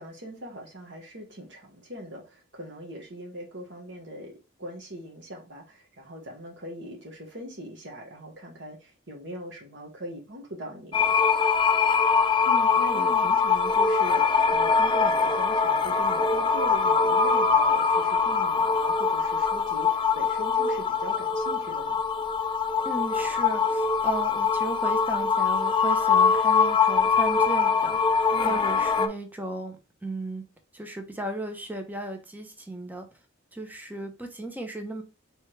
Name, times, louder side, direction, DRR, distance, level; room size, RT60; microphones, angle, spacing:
voice 1, 0.0-4.3 4.6-11.1 12.4-22.0 28.3-28.6, equal, 60° right, 1.2 m, -40 dB
sound 1, 10.9-29.1, left 5 dB, 25° left, 0.4 m, -23 dB
voice 2, 12.9-13.3 22.8-30.4 30.7-33.1 33.5-35.0, right 2 dB, 10° right, 0.7 m, -35 dB
4.5 x 3.4 x 3.2 m
head